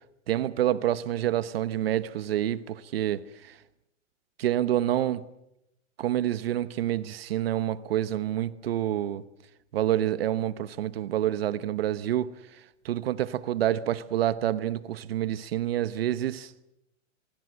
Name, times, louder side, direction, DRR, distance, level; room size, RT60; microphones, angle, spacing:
voice 1, 0.3-3.6 4.4-5.2 6.0-9.2 9.7-16.5, right 12 dB, 50° right, 1.1 m, -28 dB
25.0 x 24.5 x 7.8 m
hypercardioid pair, 165°, 38 cm